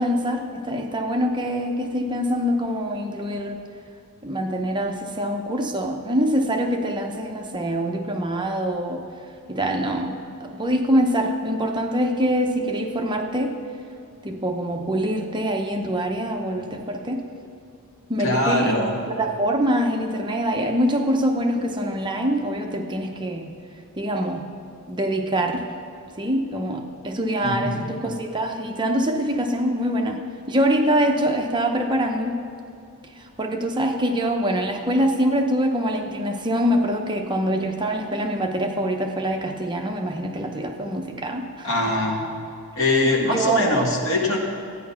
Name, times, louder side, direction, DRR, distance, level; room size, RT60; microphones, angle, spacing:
voice 1, 0.0-3.6 4.2-9.0 9.5-13.6 14.2-17.2 18.1-23.5 24.0-24.5 24.9-25.8 26.2-32.4 33.2-41.7 43.0-43.9, equal, 20° right, 3 dB, 0.7 m, -24 dB
voice 2, 18.2-18.9 27.4-27.8 41.6-42.3 42.8-44.4, left 2 dB, 60° left, 0 dB, 1.9 m, -22 dB
13.5 x 9.5 x 5.6 m, 2.5 s
head